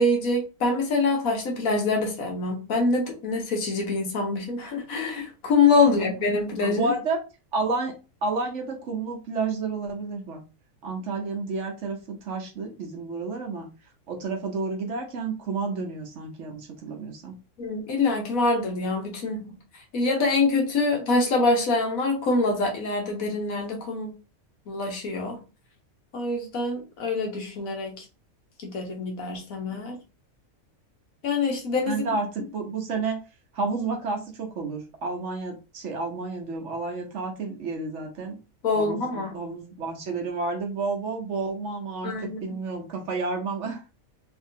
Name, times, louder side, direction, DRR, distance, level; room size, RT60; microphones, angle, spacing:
voice 1, 0.0-6.9 17.6-19.5 19.9-24.1 24.7-25.4 26.1-28.0 28.6-30.0 31.2-32.0 38.6-39.3 42.0-42.6, left 3 dB, 80° left, 1 dB, 1.5 m, -25 dB
voice 2, 6.6-7.2 7.5-7.9 8.2-10.4 10.8-13.7 14.1-17.3 31.9-33.2 33.5-38.4 38.7-43.8, right 3 dB, 60° right, 2 dB, 1.1 m, -30 dB
3.4 x 2.9 x 2.7 m, 0.31 s
omnidirectional pair, 1.5 m